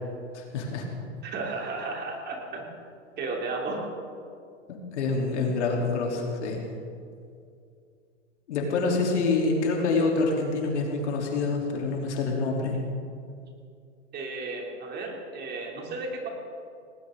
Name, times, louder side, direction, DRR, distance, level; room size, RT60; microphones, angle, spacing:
voice 1, 0.3-0.8 4.7-6.6 8.5-12.8, left 3 dB, 70° left, 0 dB, 3.6 m, -26 dB
voice 2, 1.2-2.7 3.2-3.9 14.1-16.3, right 3 dB, 25° right, 0 dB, 3.1 m, -33 dB
19.0 x 18.5 x 3.9 m, 2.4 s
hypercardioid pair, 120°, 36 cm